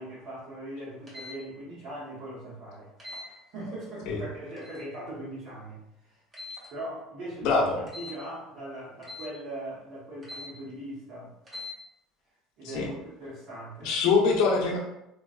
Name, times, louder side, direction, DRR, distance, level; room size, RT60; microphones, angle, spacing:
voice 1, 0.0-6.2 6.7-7.6 8.0-11.3 12.6-13.9, right 1 dB, 45° right, -8 dB, 1.1 m, -40 dB
sound 1, 1.1-1.4 3.0-3.3 4.6-4.9 6.3-6.7 7.9-8.2 9.0-9.3 10.2-10.5 11.4-11.8, left 3 dB, 15° right, 0.7 m, -41 dB
voice 2, 7.4-7.8 12.7-12.9 13.8-14.8, left 4 dB, 60° left, -1 dB, 0.7 m, -23 dB
3.9 x 2.3 x 2.4 m, 0.84 s
cardioid pair, 175°, 0 cm